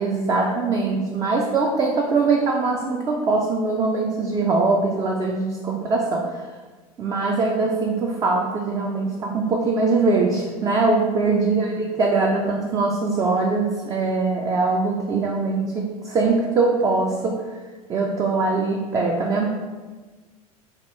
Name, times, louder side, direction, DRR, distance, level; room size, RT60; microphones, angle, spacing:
voice 1, 0.0-6.4 7.0-17.4 17.9-19.5, right 3 dB, 20° right, 0 dB, 0.3 m, -22 dB
2.9 x 2.8 x 3.0 m, 1.3 s
figure-of-eight pair, 80°, 19 cm